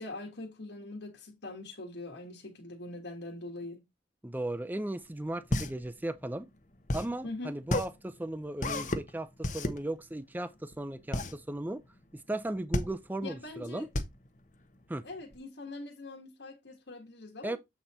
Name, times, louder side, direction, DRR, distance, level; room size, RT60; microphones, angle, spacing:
voice 1, 0.0-3.8 7.2-7.5 13.2-13.9 15.0-17.6, left 2 dB, 80° left, 1.8 m, -42 dB
voice 2, 4.2-6.5 6.9-11.8 12.1-13.9 14.9-15.1 17.4-17.6, right 1 dB, 10° right, 0.4 m, -36 dB
sound 1, 5.0-15.4, left 1 dB, 45° left, 0.9 m, -34 dB
8.0 x 4.1 x 4.3 m
head